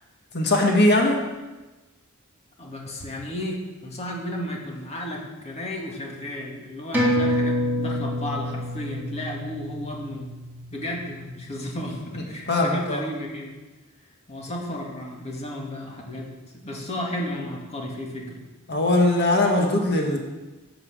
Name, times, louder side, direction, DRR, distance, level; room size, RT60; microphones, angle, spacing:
voice 1, 0.3-1.2 12.5-13.0 18.7-20.2, left 2 dB, 50° left, 1 dB, 1.7 m, -20 dB
voice 2, 2.6-10.3 10.7-13.5 14.3-18.4, left 1 dB, 30° left, -1 dB, 2.1 m, -33 dB
sound 1, 6.9-11.9 12.2-12.3, equal, 10° right, 2.9 m, -27 dB
11.5 x 6.1 x 7.8 m, 1.1 s
head